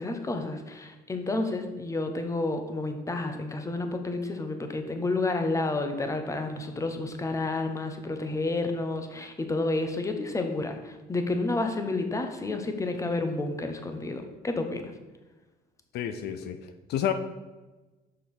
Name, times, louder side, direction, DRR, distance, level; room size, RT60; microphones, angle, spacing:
voice 1, 0.0-14.9, left 2 dB, 20° left, 6 dB, 1.0 m, -30 dB
voice 2, 15.9-16.6 16.9-17.1, left 10 dB, 75° left, 9 dB, 0.7 m, -29 dB
6.2 x 5.4 x 6.0 m, 1.2 s
cardioid pair, 110°, 17 cm